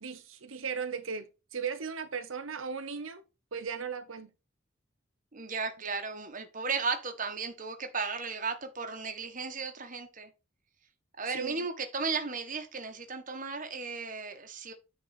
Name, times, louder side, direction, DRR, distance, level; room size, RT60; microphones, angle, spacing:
voice 1, 0.0-3.2 3.5-4.3 11.3-11.7, right 6 dB, 80° right, 0.9 m, -37 dB
voice 2, 5.3-10.3 11.2-14.7, right 4 dB, 40° right, 1.4 m, -35 dB
9.5 x 4.2 x 4.1 m
head